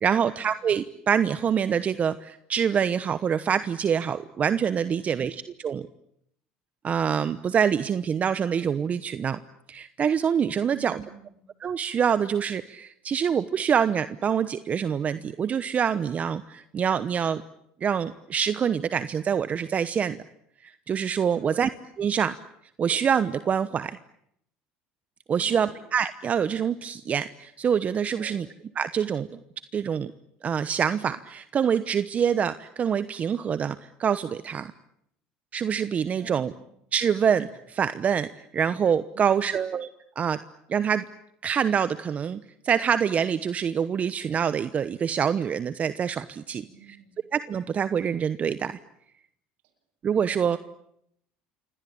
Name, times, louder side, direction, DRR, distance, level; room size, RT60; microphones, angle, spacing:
voice 1, 0.0-5.9 6.8-9.4 9.7-11.0 11.6-17.4 17.8-20.2 20.6-21.7 22.0-22.3 22.8-24.0 25.3-28.5 28.8-29.4 29.7-30.1 30.4-34.7 35.5-36.5 36.9-39.9 40.2-40.4 40.7-41.1 41.4-47.0 47.3-48.8 50.0-50.6, right 7 dB, 40° right, 13 dB, 1.0 m, -25 dB
voice 2, 10.7-11.4 21.3-21.7 25.3-25.8 28.1-28.5 36.2-36.6 39.1-39.5 46.5-47.2 50.3-50.6, right 8 dB, 75° right, 7 dB, 7.8 m, -47 dB
28.0 x 24.5 x 8.7 m, 0.75 s
supercardioid pair, 90°, 4 cm